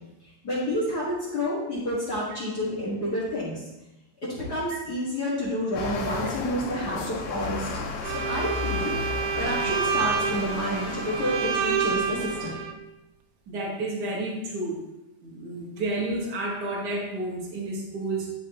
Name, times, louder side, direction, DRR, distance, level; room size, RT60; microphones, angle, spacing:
voice 1, 0.2-3.7 4.2-8.9 9.3-12.6, equal, 45° left, -7 dB, 1.2 m, -29 dB
sound 1, 5.8-12.5, left 4 dB, 80° left, 2.8 m, -34 dB
Bowed string instrument, 8.0-12.7, right 6 dB, 80° right, 2.6 m, -28 dB
voice 2, 13.5-14.8 15.2-18.3, right 2 dB, 50° right, -3 dB, 1.2 m, -31 dB
11.0 x 6.0 x 3.0 m, 1.0 s
omnidirectional pair, 4.4 m